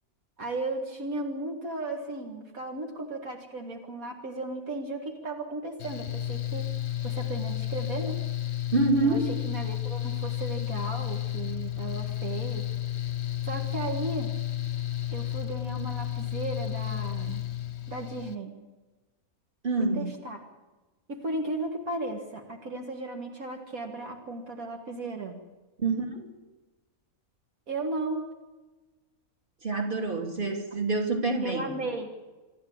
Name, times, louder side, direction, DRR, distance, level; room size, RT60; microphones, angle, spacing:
voice 1, 0.4-6.7 7.0-8.2 9.0-12.7 13.4-14.3 15.1-17.5 17.9-18.6 19.9-20.4 21.1-25.4 27.7-28.3 31.4-32.1, right 2 dB, 70° right, 3 dB, 2.3 m, -35 dB
Mechanical fan, 5.8-18.3, left 13 dB, 55° left, 1.0 m, -32 dB
voice 2, 8.7-9.3 19.6-20.0 25.8-26.3 29.6-31.7, right 3 dB, 35° right, 3 dB, 3.1 m, -26 dB
27.0 x 11.0 x 8.7 m, 1.2 s
omnidirectional pair, 1.5 m